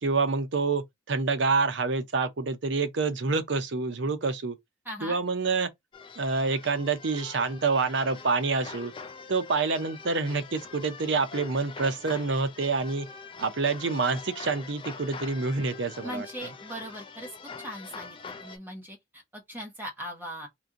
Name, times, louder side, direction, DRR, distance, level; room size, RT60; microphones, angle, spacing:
voice 1, 0.0-4.6 5.0-5.7 6.2-8.9 9.3-13.1 13.4-16.3, right 4 dB, 60° right, 0.6 m, -27 dB
voice 2, 4.8-5.2 16.0-17.3 17.6-20.5, equal, 10° right, 1.1 m, -39 dB
sound 1, 5.9-18.6, left 5 dB, 25° left, 0.4 m, -44 dB
3.0 x 2.6 x 3.7 m
head